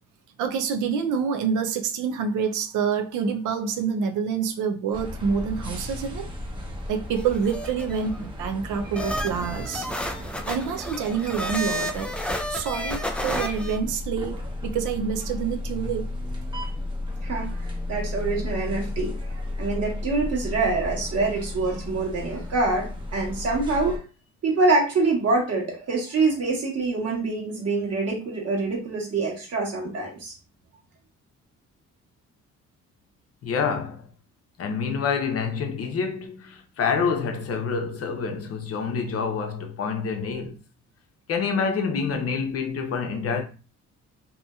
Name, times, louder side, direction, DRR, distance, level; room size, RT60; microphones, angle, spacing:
voice 1, 0.4-6.3 6.9-9.9 10.5-12.1 12.5-14.3 14.6-16.1, right 6 dB, 85° right, 0.5 m, -27 dB
sound 1, 4.9-24.0, left 1 dB, 15° right, 0.8 m, -34 dB
sound 2, 7.2-8.2 9.0-13.8, equal, 5° left, 0.4 m, -31 dB
voice 2, 17.2-24.0 24.4-30.3, right 3 dB, 55° right, 1.3 m, -25 dB
voice 3, 33.4-34.0 34.6-40.6 41.3-43.4, left 5 dB, 50° left, 0.6 m, -27 dB
2.7 x 2.7 x 2.3 m
cardioid pair, 90°, 30 cm